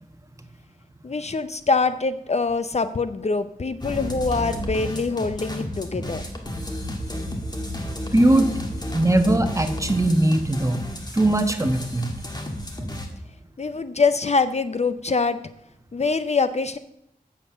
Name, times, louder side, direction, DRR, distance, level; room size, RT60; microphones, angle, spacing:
voice 1, 1.0-6.3 13.6-15.4 15.9-16.8, left 4 dB, 45° left, 12 dB, 0.5 m, -24 dB
sound 1, 3.8-13.1, equal, 25° left, 1.8 m, -32 dB
voice 2, 8.1-8.5 8.9-10.8 11.1-12.1, right 1 dB, 20° right, 7 dB, 1.2 m, -20 dB
8.1 x 7.4 x 6.7 m, 0.79 s
wide cardioid pair, 75°, 15 cm